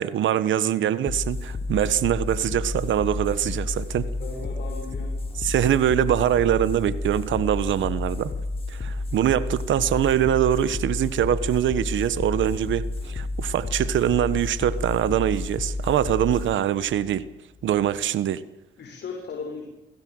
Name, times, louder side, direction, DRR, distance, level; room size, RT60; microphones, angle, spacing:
voice 1, 0.0-4.1 5.4-8.3 8.7-17.3 17.6-18.4, right 11 dB, 75° right, 1.4 m, -23 dB
sound 1, 1.1-18.1, left 2 dB, 30° left, 3.9 m, -31 dB
voice 2, 4.1-5.1 18.8-19.6, left 4 dB, 60° left, 7.0 m, -36 dB
27.5 x 18.0 x 8.0 m
cardioid pair, 90°, 20 cm